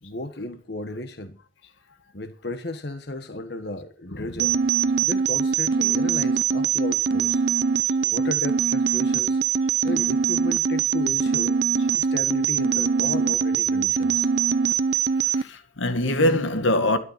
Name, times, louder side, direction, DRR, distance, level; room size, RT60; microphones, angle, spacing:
voice 1, 0.0-1.4 2.1-4.5 5.0-7.4 8.1-9.4 9.8-11.6 11.9-14.3, left 2 dB, 60° left, 1.4 m, -34 dB
sound 1, 4.4-15.4, right 6 dB, 60° right, 0.6 m, -22 dB
voice 2, 15.3-17.0, left 1 dB, 85° left, 1.9 m, -23 dB
13.0 x 12.0 x 5.7 m
head